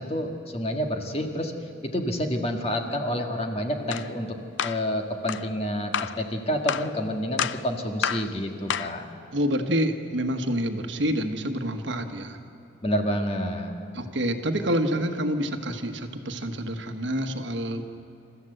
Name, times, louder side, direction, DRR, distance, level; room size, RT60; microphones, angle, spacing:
voice 1, 0.0-1.5 1.9-4.3 4.6-9.1 12.8-13.7, equal, 30° left, 3 dB, 1.7 m, -28 dB
sound 1, 3.9-4.1 4.6-4.8 5.3-5.5 5.9-6.2 6.7-6.9 7.4-7.6 8.0-8.3 8.7-9.0, left 8 dB, 75° left, 0.5 m, -28 dB
voice 2, 9.3-12.4 13.9-17.8, equal, 75° right, 6 dB, 1.4 m, -27 dB
27.5 x 14.0 x 7.9 m, 2.6 s
head